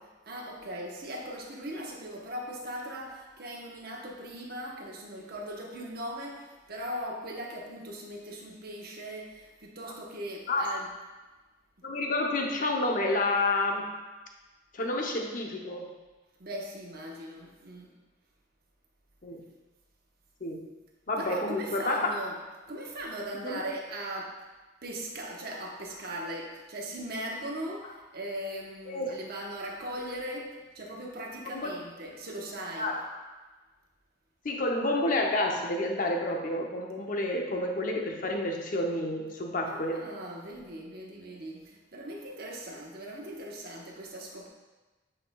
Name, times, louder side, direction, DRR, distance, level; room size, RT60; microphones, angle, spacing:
voice 1, 0.3-10.9 16.4-17.9 21.1-22.4 22.7-24.4 24.8-33.0 39.7-44.5, right 1 dB, 55° right, -1 dB, 1.0 m, -39 dB
voice 2, 11.8-13.9 14.7-15.9 19.2-19.4 20.4-20.7 21.1-22.1 23.4-23.6 28.9-29.2 31.5-31.7 32.8-33.0 34.4-40.0, left 2 dB, 45° left, 1 dB, 0.7 m, -29 dB
8.5 x 5.0 x 2.3 m, 1.2 s
head